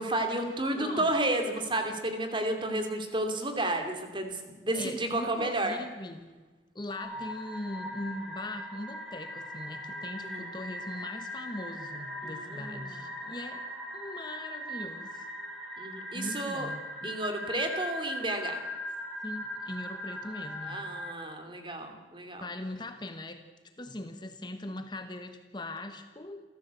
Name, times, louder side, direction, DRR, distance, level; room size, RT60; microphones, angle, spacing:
voice 1, 0.0-5.8 10.2-10.5 12.2-13.0 15.8-16.7 17.0-18.6 20.6-22.4, right 1 dB, 25° right, 5 dB, 2.8 m, -32 dB
voice 2, 0.7-1.1 4.7-6.4 6.7-13.6 13.9-15.3 16.1-17.2 19.2-20.8 22.4-23.4 23.8-26.4, left 1 dB, 25° left, 8 dB, 1.2 m, -40 dB
sound 1, 6.9-21.1, equal, ahead, 4.7 m, -40 dB
27.5 x 14.5 x 8.2 m, 1.3 s
head